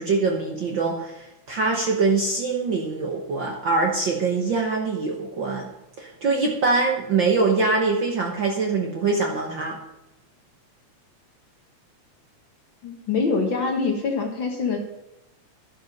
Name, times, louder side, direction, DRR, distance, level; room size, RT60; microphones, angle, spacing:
voice 1, 0.0-5.7 6.0-9.8, right 4 dB, 55° right, 1 dB, 1.5 m, -23 dB
voice 2, 12.8-14.8, left 4 dB, 50° left, 3 dB, 1.8 m, -24 dB
12.0 x 10.5 x 5.3 m, 0.91 s
omnidirectional pair, 3.4 m